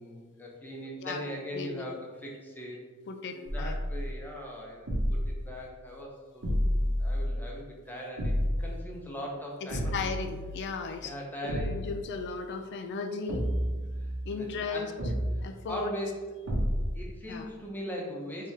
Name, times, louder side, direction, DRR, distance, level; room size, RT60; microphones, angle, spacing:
voice 1, 0.0-2.8 3.3-6.4 6.8-10.1 11.0-11.8 14.3-14.9 15.7-16.3 16.9-18.5, equal, 10° left, -2 dB, 0.6 m, -40 dB
voice 2, 1.5-1.9 3.1-3.8 9.6-11.1 11.4-13.5 14.3-14.9 15.4-15.9 17.3-17.5, left 4 dB, 55° left, 7 dB, 0.4 m, -36 dB
sound 1, 3.5-4.2 4.9-5.5 6.4-7.5 8.2-8.8 9.7-10.8 11.5-12.1 13.3-14.4 15.0-15.6 16.5-17.1, equal, 80° right, 0.9 m, -30 dB
3.5 x 3.4 x 2.7 m, 1.4 s
head